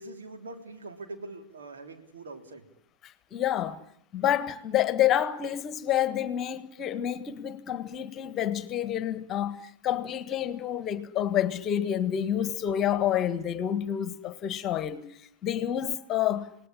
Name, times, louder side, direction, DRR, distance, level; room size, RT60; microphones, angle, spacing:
voice 1, 0.0-2.7, right 2 dB, 70° right, 3.4 m, -43 dB
voice 2, 3.0-3.8 4.1-16.5, left 10 dB, 30° left, 1.6 m, -28 dB
28.5 x 19.0 x 10.0 m
figure-of-eight pair, 90°, 0 cm